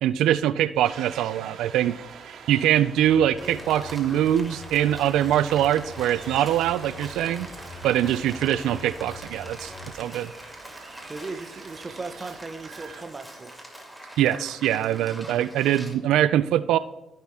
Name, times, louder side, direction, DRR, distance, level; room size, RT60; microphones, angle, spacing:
voice 1, 0.0-1.9 2.5-7.5 7.8-10.3 14.2-16.8, right 11 dB, 90° right, 12 dB, 0.3 m, -23 dB
sound 1, 0.8-13.0, right 7 dB, 70° right, 1.2 m, -46 dB
sound 2, 3.0-10.0, left 2 dB, 25° left, 2.4 m, -43 dB
Rain, 3.4-15.9, right 1 dB, ahead, 2.6 m, -44 dB
voice 2, 11.1-13.6, right 3 dB, 30° right, 9 dB, 0.9 m, -37 dB
14.5 x 5.8 x 3.5 m, 0.97 s
cardioid pair, 90°, 0 cm